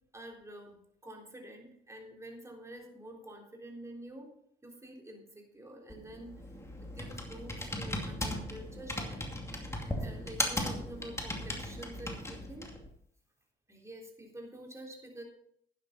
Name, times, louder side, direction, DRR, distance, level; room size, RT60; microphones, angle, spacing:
voice 1, 0.1-4.3 4.6-6.3 6.8-9.2 10.0-12.7 13.7-15.2, right 1 dB, 15° right, 0 dB, 3.6 m, -48 dB
Computer keyboard, 5.9-12.9, left 1 dB, 15° left, 2.4 m, -37 dB
12.0 x 9.6 x 4.2 m, 0.67 s
cardioid pair, 90°, 20 cm